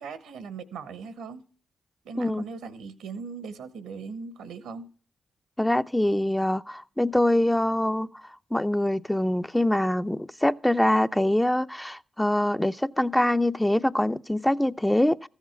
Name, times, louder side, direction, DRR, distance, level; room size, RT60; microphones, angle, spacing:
voice 1, 0.0-1.4 2.0-4.9, right 5 dB, 85° right, 1.3 m, -39 dB
voice 2, 5.6-15.3, left 1 dB, 10° left, 0.6 m, -24 dB
14.5 x 7.3 x 6.0 m
hypercardioid pair, 40°, 0 cm